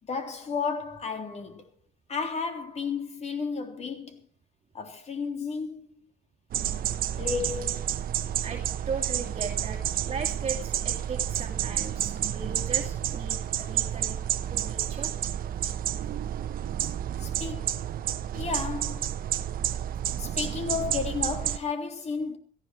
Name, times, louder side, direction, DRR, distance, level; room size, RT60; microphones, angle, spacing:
voice 1, 0.0-1.7 2.1-4.2 4.7-6.1 7.2-7.9 12.2-12.3 16.6-16.7 17.2-17.8 18.3-19.2 20.2-22.4, left 5 dB, 40° left, 3.4 m, -33 dB
sound 1, 6.5-21.6, right 11 dB, 60° right, 1.0 m, -30 dB
voice 2, 8.4-14.2 14.5-15.1, right 5 dB, 35° right, 2.4 m, -37 dB
17.5 x 14.5 x 4.6 m
cardioid pair, 110°, 17 cm